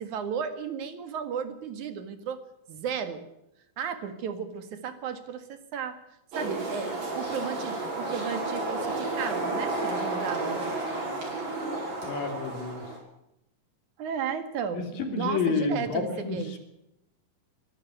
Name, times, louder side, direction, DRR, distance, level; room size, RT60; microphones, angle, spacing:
voice 1, 0.0-2.4 2.7-3.2 3.8-6.0 6.3-10.6 14.0-16.5, right 7 dB, 65° right, 10 dB, 3.2 m, -34 dB
sound 1, 6.3-13.0, right 2 dB, 90° right, 8.3 m, -32 dB
voice 2, 12.0-12.8 14.7-14.8 15.1-16.6, left 5 dB, 85° left, 5 dB, 4.9 m, -29 dB
24.5 x 12.5 x 9.3 m, 0.83 s
omnidirectional pair, 3.9 m